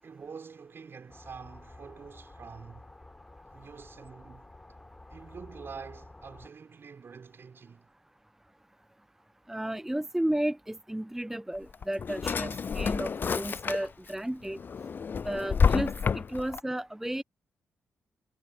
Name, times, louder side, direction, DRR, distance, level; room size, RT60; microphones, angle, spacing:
voice 1, 0.0-2.9 3.5-4.5 5.1-7.9, right 5 dB, 55° right, 5.5 m, -46 dB
sound 1, 1.1-6.5, left 2 dB, 20° left, 6.7 m, -51 dB
voice 2, 9.5-14.6 15.2-17.2, right 1 dB, 5° right, 0.7 m, -33 dB
Drawer open or close, 11.6-14.1 14.5-16.6, left 6 dB, 45° left, 0.3 m, -29 dB
supercardioid pair, 50°, 5 cm